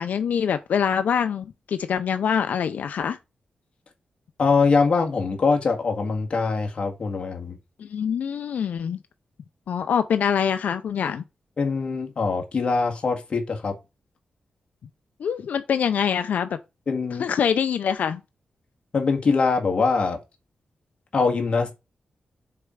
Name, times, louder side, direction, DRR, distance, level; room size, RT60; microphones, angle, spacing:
voice 1, 0.0-3.2 7.8-9.0 9.7-11.2 15.2-16.6 17.2-18.2, left 7 dB, 90° left, 0.6 m, -24 dB
voice 2, 4.4-7.6 11.6-13.7 16.9-17.3 18.9-20.2 21.1-21.8, left 4 dB, 45° left, 1.8 m, -23 dB
6.7 x 4.4 x 5.0 m
wide cardioid pair, 170°, 3 cm